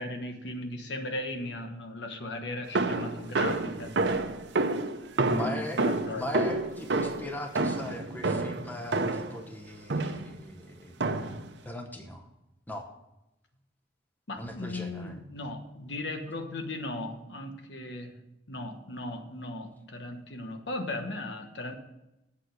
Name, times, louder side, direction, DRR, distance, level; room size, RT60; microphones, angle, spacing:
voice 1, 0.0-3.9 5.2-6.3 14.3-18.2 18.5-21.7, left 2 dB, 85° left, 5 dB, 1.3 m, -37 dB
sound 1, 2.7-9.4 9.9-10.4 11.0-11.5, right 2 dB, 85° right, 0.8 m, -29 dB
voice 2, 5.3-5.8 6.1-11.0 11.6-12.3 12.7-12.9 14.4-15.2, left 1 dB, 10° left, 4 dB, 0.8 m, -39 dB
8.3 x 6.2 x 8.0 m, 0.92 s
head